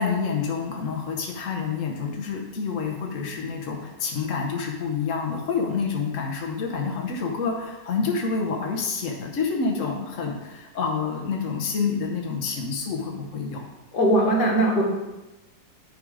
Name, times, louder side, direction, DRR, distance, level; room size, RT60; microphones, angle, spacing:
voice 1, 0.0-13.6, left 5 dB, 50° left, 1 dB, 1.2 m, -28 dB
voice 2, 13.9-14.8, right 1 dB, 70° left, -1 dB, 2.1 m, -20 dB
10.5 x 4.0 x 4.9 m, 1.0 s
omnidirectional pair, 1.9 m